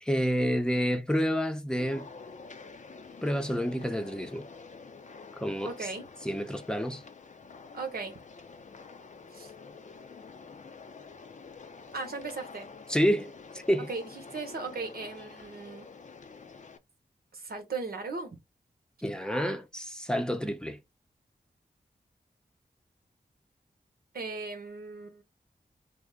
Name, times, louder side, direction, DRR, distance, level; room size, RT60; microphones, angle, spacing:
voice 1, 0.0-2.1 3.2-4.5 5.4-5.9 6.2-7.0 12.9-13.3 13.7-13.9 19.0-20.8, equal, 5° left, 0.7 m, -29 dB
sound 1, 1.8-16.8, left 4 dB, 50° left, 0.5 m, -48 dB
voice 2, 5.6-6.1 7.7-8.1 9.3-9.5 11.9-12.7 13.9-15.9 17.3-18.4 24.1-25.2, right 4 dB, 75° right, 0.9 m, -37 dB
3.4 x 2.1 x 3.6 m
cardioid pair, 45°, 16 cm